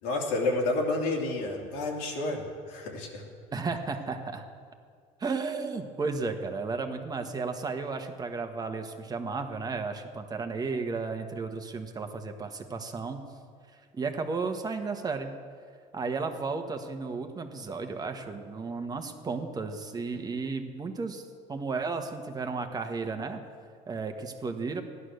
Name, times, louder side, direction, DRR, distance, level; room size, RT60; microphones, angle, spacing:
voice 1, 0.0-3.2, left 2 dB, 85° left, 0 dB, 2.8 m, -30 dB
voice 2, 3.5-4.4 5.2-13.2 13.9-15.4 15.9-23.5 23.9-24.8, right 4 dB, 25° right, 6 dB, 1.3 m, -33 dB
15.0 x 11.0 x 6.6 m, 2.2 s
cardioid pair, 115°, 15 cm